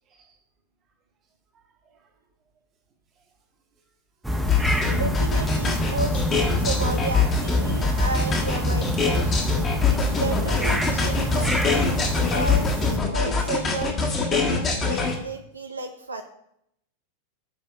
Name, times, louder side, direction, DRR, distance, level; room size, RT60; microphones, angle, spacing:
voice 1, 1.5-2.1, right 5 dB, 30° right, 1.4 m, -62 dB
sound 1, 4.2-13.0, equal, 5° right, 1.0 m, -26 dB
sound 2, 4.5-15.1, left 5 dB, 25° left, 1.4 m, -24 dB
voice 2, 4.9-9.4 9.9-16.2, right 3 dB, 80° right, 0.5 m, -33 dB
8.9 x 3.4 x 6.1 m
figure-of-eight pair, 90°, 0 cm